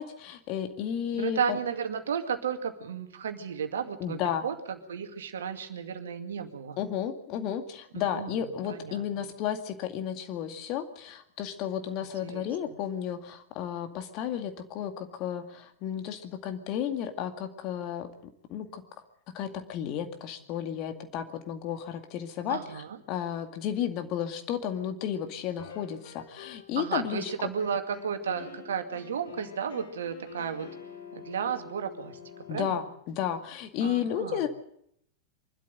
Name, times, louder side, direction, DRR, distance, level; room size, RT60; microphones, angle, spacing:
voice 1, 0.0-1.6 4.0-4.5 6.8-18.1 18.5-18.8 19.3-22.6 23.1-27.3 32.5-34.5, left 9 dB, 40° left, 7 dB, 2.2 m, -33 dB
voice 2, 1.2-6.8 7.9-9.3 12.2-12.8 22.5-23.0 26.8-30.7 31.1-32.2 32.5-32.8 33.8-34.4, right 7 dB, 65° right, 6 dB, 2.2 m, -33 dB
sound 1, 25.6-26.7 27.0-32.9, left 7 dB, 65° left, 4.1 m, -47 dB
24.0 x 12.5 x 9.2 m, 0.71 s
figure-of-eight pair, 90°, 0 cm